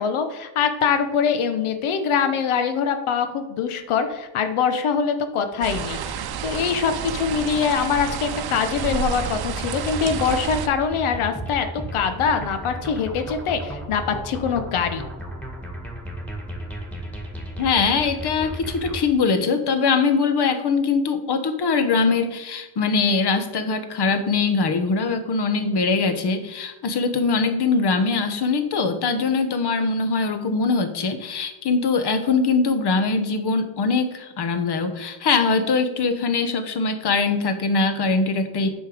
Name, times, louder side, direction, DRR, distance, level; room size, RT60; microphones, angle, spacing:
voice 1, 0.0-15.0, left 6 dB, 80° left, 8 dB, 1.0 m, -23 dB
sound 1, 5.6-10.7, right 7 dB, 50° right, 0.7 m, -30 dB
sound 2, 8.8-19.1, equal, 5° left, 1.8 m, -34 dB
voice 2, 17.6-38.7, left 4 dB, 50° left, 8 dB, 1.2 m, -22 dB
9.1 x 5.5 x 5.0 m, 1.1 s
cardioid pair, 130°, 49 cm